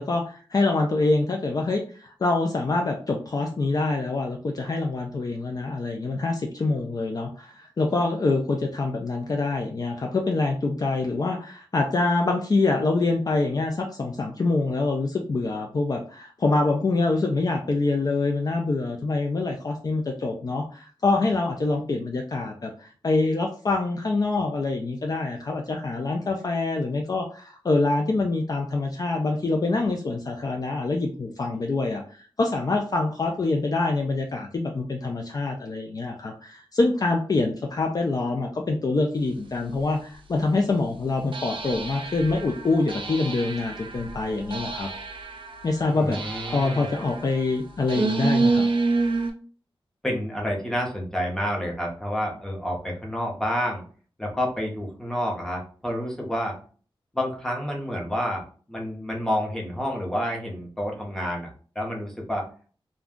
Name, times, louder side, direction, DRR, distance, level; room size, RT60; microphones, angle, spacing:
voice 1, 0.0-44.9 45.6-46.2 46.5-48.7, left 3 dB, 45° left, 2 dB, 0.4 m, -25 dB
sound 1, 39.7-39.8 41.3-49.3, right 3 dB, 65° right, 0.5 m, -28 dB
voice 2, 45.9-46.9 50.0-53.8 54.2-56.6 57.1-62.5, equal, 5° left, -1 dB, 0.8 m, -29 dB
2.5 x 2.2 x 3.6 m, 0.41 s
wide cardioid pair, 120°, 9 cm